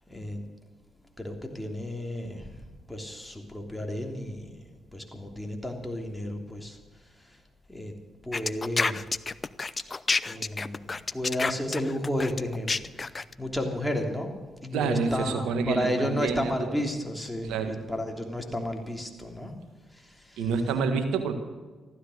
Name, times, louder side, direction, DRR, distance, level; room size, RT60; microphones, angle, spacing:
voice 1, 0.1-0.4 1.2-7.4 7.7-7.9 8.2-9.0 10.2-14.3 14.6-19.6 19.9-20.4, left 1 dB, 5° left, 2 dB, 3.2 m, -33 dB
sound 1, 8.3-13.3, left 4 dB, 35° left, 0.6 m, -29 dB
voice 2, 14.7-16.8 17.4-17.8 20.4-21.4, right 5 dB, 80° right, 7 dB, 1.5 m, -28 dB
15.0 x 12.5 x 6.5 m, 1.3 s
supercardioid pair, 50°, 0 cm